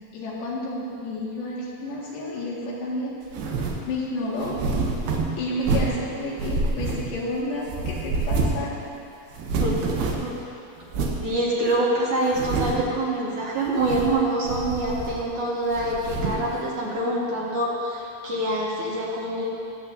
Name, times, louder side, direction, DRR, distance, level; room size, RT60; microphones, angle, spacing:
voice 1, 0.1-3.1 3.9-4.6 5.4-8.7, left 1 dB, 85° left, -6 dB, 4.2 m, -30 dB
sound 1, 3.3-3.9 4.4-6.0 6.4-7.4 7.7-8.7 9.0-9.1 9.3-10.4 10.9-11.3 11.7-11.8 12.3-12.9 13.7-14.2 14.5-15.3 15.7-16.5, right 3 dB, 80° right, 2.9 m, -27 dB
voice 2, 11.2-19.4, right 1 dB, 55° right, -6 dB, 2.6 m, -25 dB
23.5 x 8.6 x 2.7 m, 2.6 s
omnidirectional pair, 4.7 m